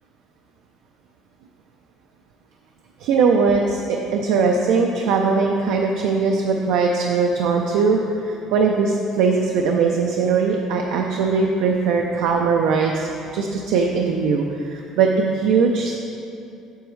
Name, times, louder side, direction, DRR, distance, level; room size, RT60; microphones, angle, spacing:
voice 1, 3.0-16.1, right 5 dB, 80° right, 1 dB, 0.5 m, -20 dB
8.0 x 7.1 x 3.2 m, 2.7 s
cardioid pair, 150°, 0 cm